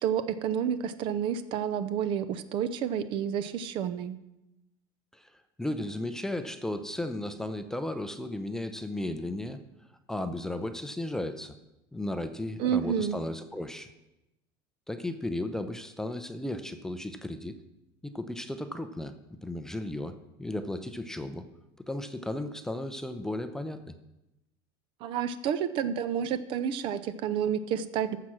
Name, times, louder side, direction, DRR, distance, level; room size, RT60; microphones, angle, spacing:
voice 1, 0.0-4.1 12.6-13.2 25.0-28.2, right 8 dB, 45° right, 13 dB, 0.7 m, -30 dB
voice 2, 5.6-9.6 10.1-11.6 11.9-13.9 14.9-17.6 18.0-19.1 19.4-20.1 20.4-21.4 21.9-24.0, left 1 dB, 5° left, 8 dB, 0.6 m, -35 dB
14.0 x 5.8 x 6.1 m, 0.92 s
supercardioid pair, 145°, 12 cm